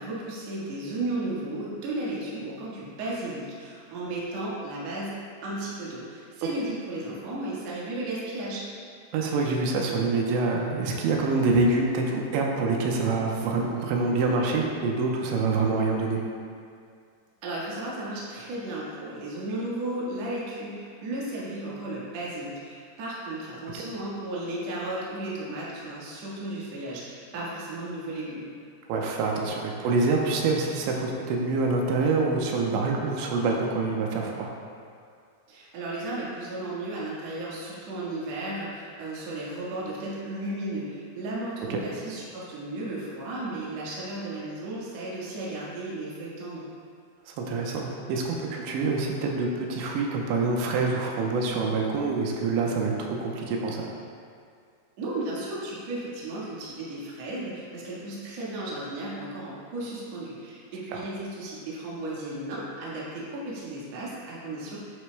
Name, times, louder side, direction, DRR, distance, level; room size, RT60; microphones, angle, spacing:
voice 1, 0.0-5.2 5.4-8.7 17.4-28.5 35.5-46.7 55.0-64.8, right 2 dB, 55° right, -7 dB, 2.0 m, -34 dB
voice 2, 9.1-16.2 23.7-23.8 28.9-34.5 41.7-41.8 47.3-53.9, right 3 dB, 90° right, 0 dB, 3.0 m, -26 dB
9.4 x 9.2 x 2.2 m, 2.3 s
omnidirectional pair, 5.2 m